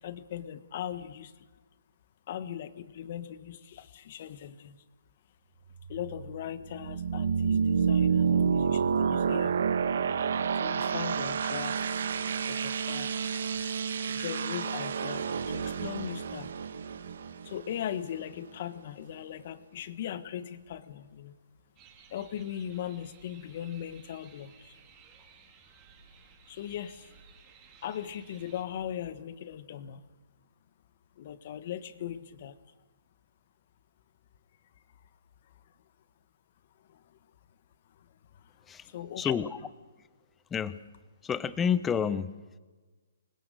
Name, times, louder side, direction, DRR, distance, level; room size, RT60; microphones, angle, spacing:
voice 1, 0.0-1.5 2.3-4.8 5.9-9.6 10.5-12.0 12.4-16.5 17.4-21.3 22.1-24.8 26.5-27.1 27.8-30.0 31.2-32.6 36.8-37.2 38.0-39.4, left 10 dB, 45° left, 13 dB, 1.4 m, -39 dB
sound 1, 5.7-18.4, right 6 dB, 65° right, 1.2 m, -29 dB
sound 2, 21.8-28.6, right 6 dB, 25° right, 3.6 m, -57 dB
voice 2, 39.2-39.5 40.5-40.8 41.2-42.3, left 7 dB, 10° left, 16 dB, 0.7 m, -29 dB
26.0 x 20.5 x 6.7 m, 1.3 s
hypercardioid pair, 155°, 0 cm